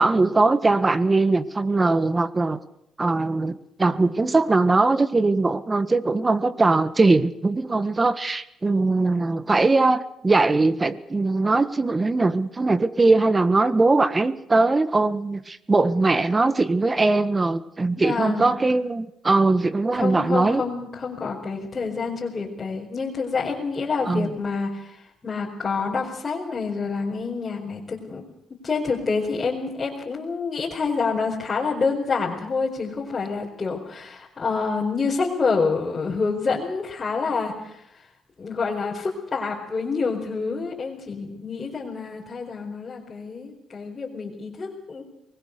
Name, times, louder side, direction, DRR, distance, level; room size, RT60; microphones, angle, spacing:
voice 1, 0.0-2.6 3.0-20.6 24.1-24.3, right 3 dB, 25° right, 13 dB, 1.5 m, -21 dB
voice 2, 18.0-18.5 19.9-28.2 28.6-38.0 38.4-45.0, left 4 dB, 30° left, -3 dB, 4.7 m, -27 dB
24.0 x 20.5 x 6.8 m, 0.79 s
cardioid pair, 90°, 0 cm